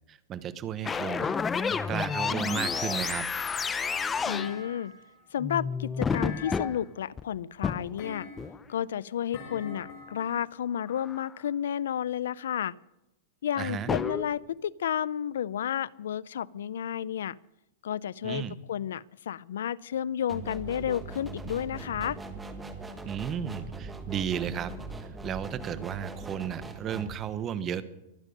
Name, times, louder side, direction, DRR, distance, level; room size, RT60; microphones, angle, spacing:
voice 1, 0.1-1.3 1.9-3.3 13.6-13.9 18.2-18.6 23.1-24.7 25.2-27.8, right 9 dB, 25° right, 13 dB, 0.9 m, -33 dB
sound 1, 0.8-4.5 5.4-6.7 7.2-7.3 7.6-7.8 8.4-8.6 10.9-11.3 13.9-14.2, left 5 dB, 15° left, 0.6 m, -30 dB
Thump thud, 2.5-3.4 4.2-5.1 6.1-6.9 8.0-8.7 9.3-10.4, left 5 dB, 50° left, 6.3 m, -44 dB
voice 2, 4.3-4.9 5.3-8.3 8.7-12.7 13.4-17.4 17.8-22.2, left 9 dB, 85° left, 23 dB, 0.4 m, -32 dB
sound 2, 20.3-27.1, right 3 dB, 10° right, 1.5 m, -40 dB
23.5 x 9.0 x 5.3 m, 0.90 s
supercardioid pair, 150°, 0 cm